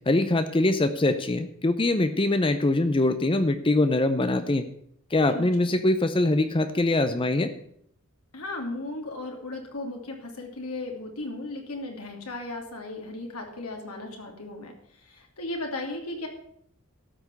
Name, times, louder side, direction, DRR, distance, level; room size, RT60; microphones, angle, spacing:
voice 1, 0.1-4.6 5.1-7.5, left 2 dB, 25° left, 10 dB, 0.6 m, -23 dB
voice 2, 5.3-5.7 8.3-16.3, left 2 dB, 85° left, 2 dB, 2.7 m, -36 dB
13.0 x 6.1 x 8.1 m, 0.69 s
head